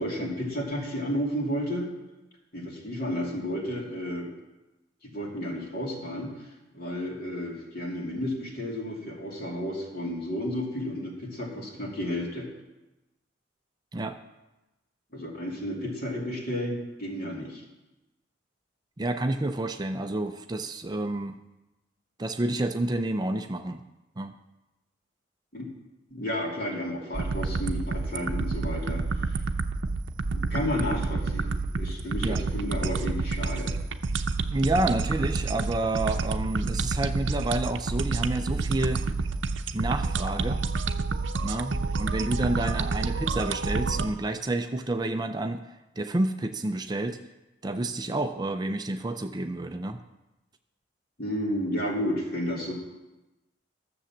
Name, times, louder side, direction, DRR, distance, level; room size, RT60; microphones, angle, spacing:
voice 1, 0.0-1.9 2.5-4.3 5.0-6.3 6.7-12.5 15.1-17.6 25.5-25.7 26.1-29.0 29.3-29.4 30.3-33.7 51.2-52.7, equal, 50° left, -2 dB, 2.7 m, -32 dB
voice 2, 19.0-21.4 22.2-23.8 24.2-24.3 32.2-32.4 32.8-32.9 34.5-39.0 39.7-40.7 41.4-47.2 47.6-50.0, right 2 dB, 20° right, 7 dB, 0.4 m, -29 dB
sound 1, 27.1-44.1, right 3 dB, 75° right, 0.7 m, -29 dB
13.0 x 7.0 x 7.2 m, 1.0 s
head